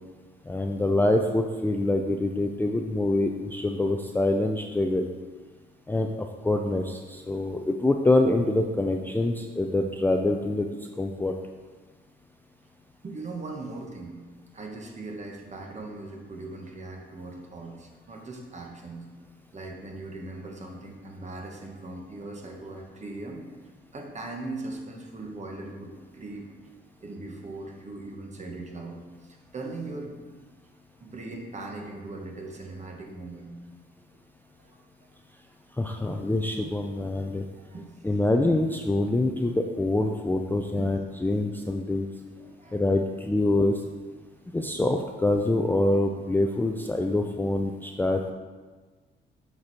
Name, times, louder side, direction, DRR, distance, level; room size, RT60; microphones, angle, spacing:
voice 1, 0.4-5.1 5.9-11.3 35.8-37.5 38.0-42.1 42.7-43.8 44.5-48.3, left 2 dB, 10° left, 3 dB, 0.4 m, -25 dB
voice 2, 13.0-14.2 14.5-19.1 19.5-23.4 23.9-26.5 27.0-30.2 31.0-33.6 34.1-34.2 34.6-34.8 37.6-37.9 40.8-40.9 42.4-42.8, right 2 dB, 35° right, 1 dB, 1.4 m, -39 dB
7.4 x 4.6 x 4.2 m, 1.4 s
cardioid pair, 90°, 20 cm